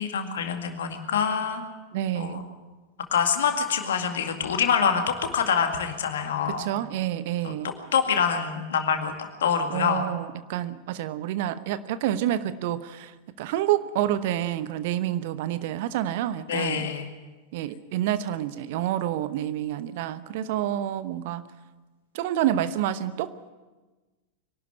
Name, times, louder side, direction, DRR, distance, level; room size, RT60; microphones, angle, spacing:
voice 1, 0.0-1.6 2.1-2.4 3.1-6.6 7.4-7.5 7.9-10.0 16.5-17.1, left 7 dB, 60° left, 5 dB, 2.1 m, -25 dB
voice 2, 1.9-2.5 6.6-7.7 9.7-16.9 17.5-21.4 22.1-23.5, right 12 dB, 50° right, 14 dB, 0.9 m, -28 dB
23.0 x 12.0 x 9.8 m, 1.2 s
figure-of-eight pair, 90°, 0 cm